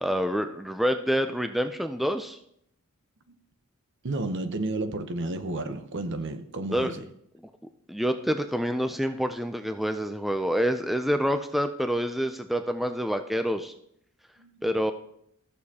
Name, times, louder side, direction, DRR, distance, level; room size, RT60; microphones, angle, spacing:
voice 1, 0.0-2.4 6.7-6.9 7.9-13.7 14.6-14.9, equal, ahead, 0.3 m, -27 dB
voice 2, 4.0-7.0 14.4-14.5, right 2 dB, 55° right, 0.8 m, -32 dB
14.0 x 6.5 x 2.8 m
head